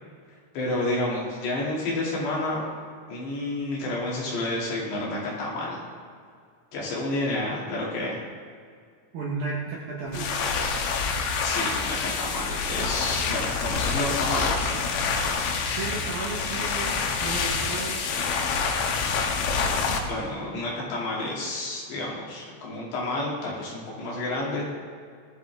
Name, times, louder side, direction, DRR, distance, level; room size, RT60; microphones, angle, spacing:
voice 1, 0.5-2.6 3.1-5.8 6.7-8.2 11.4-14.8 20.0-24.6, left 2 dB, 60° left, -5 dB, 4.5 m, -30 dB
voice 2, 9.1-10.3 15.7-18.0, right 4 dB, 65° right, -4 dB, 2.5 m, -33 dB
sound 1, 10.1-20.0, left 5 dB, 80° left, 3.5 m, -27 dB
18.5 x 12.5 x 3.5 m, 2.2 s
omnidirectional pair, 5.6 m